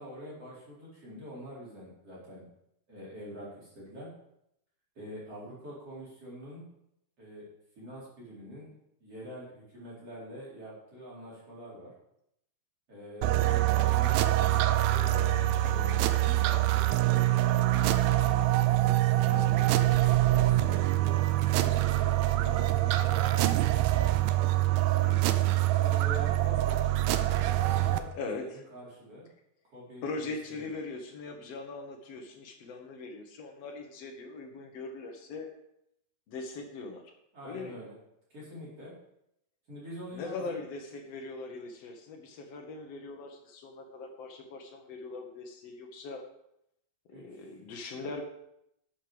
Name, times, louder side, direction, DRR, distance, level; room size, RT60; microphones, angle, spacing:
voice 1, 0.0-2.4 2.9-4.1 4.9-6.6 7.2-7.4 7.8-8.7 9.0-11.9 12.9-15.3 15.7-18.4 19.2-19.9 20.2-24.1 25.6-27.1 27.5-29.3 29.7-30.7 37.3-37.9 38.3-38.9 39.7-40.6 47.1-47.5, equal, 35° right, -6 dB, 4.8 m, -45 dB
sound 1, 13.2-28.0, right 15 dB, 80° right, 2.2 m, -25 dB
voice 2, 19.3-19.6 25.0-25.4 28.1-28.6 30.0-35.5 36.3-37.1 37.4-37.8 40.1-46.2 47.1-48.2, left 3 dB, 90° left, 2 dB, 1.3 m, -41 dB
12.0 x 8.6 x 5.1 m, 0.78 s
omnidirectional pair, 4.8 m